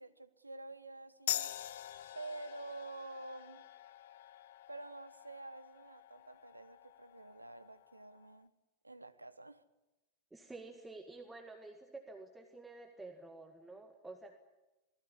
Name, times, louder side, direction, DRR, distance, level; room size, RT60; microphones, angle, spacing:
voice 1, 0.0-1.6 2.1-3.6 4.7-8.5 8.8-9.6, right 2 dB, 85° right, 1.1 m, -49 dB
sound 1, 1.3-8.4, left 12 dB, 55° left, 0.8 m, -45 dB
voice 2, 10.3-14.4, right 3 dB, 10° right, 1.9 m, -50 dB
27.0 x 20.0 x 8.4 m
figure-of-eight pair, 90°, 0 cm